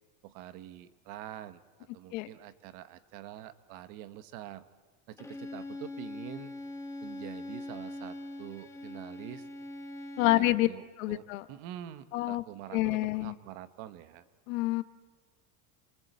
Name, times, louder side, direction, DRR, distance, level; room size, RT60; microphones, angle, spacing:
voice 1, 0.2-4.7 5.1-6.5 7.0-9.5 10.2-14.2, right 12 dB, 45° right, 12 dB, 1.2 m, -46 dB
Bowed string instrument, 5.2-10.6, left 1 dB, 5° left, 1.2 m, -42 dB
voice 2, 10.2-10.7 11.0-11.4 12.1-12.4 12.7-13.3 14.5-14.8, left 18 dB, 60° left, 13 dB, 1.2 m, -27 dB
28.0 x 22.5 x 8.0 m, 1.3 s
cardioid pair, 175°, 46 cm